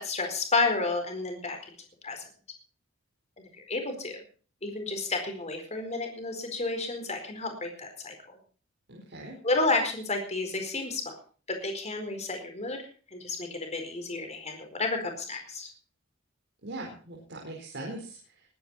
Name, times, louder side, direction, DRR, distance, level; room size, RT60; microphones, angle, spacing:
voice 1, 0.0-1.7 2.0-2.2 3.4-4.2 4.6-8.4 9.4-11.1 11.5-12.8 13.1-15.7, left 3 dB, 35° left, 5 dB, 4.5 m, -31 dB
voice 2, 8.9-9.3 16.6-18.4, right 2 dB, 60° right, -1 dB, 4.4 m, -40 dB
21.0 x 11.0 x 4.4 m, 0.40 s
head